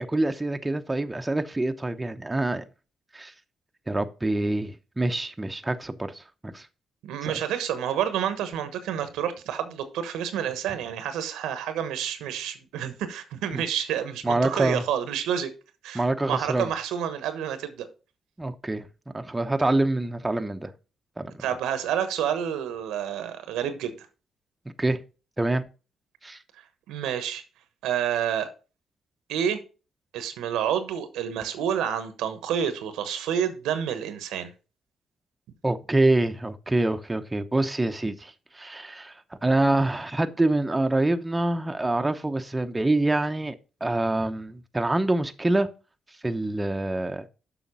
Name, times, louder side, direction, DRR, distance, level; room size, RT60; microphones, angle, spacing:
voice 1, 0.0-2.6 3.1-3.3 3.9-6.7 7.2-7.4 13.5-13.6 14.2-14.8 15.9-16.7 18.4-18.9 19.1-20.7 21.2-21.3 24.8-25.0 25.4-25.6 26.2-26.4 35.6-39.1 39.4-43.5 43.8-45.7 46.2-47.2, right 2 dB, 15° right, 0.9 m, -26 dB
voice 2, 7.0-15.5 15.8-17.9 21.4-23.9 26.9-27.4 27.8-28.5 29.3-29.6 30.1-34.5, right 9 dB, 90° right, 1.1 m, -29 dB
7.1 x 5.7 x 5.5 m
cardioid pair, 70°, 0 cm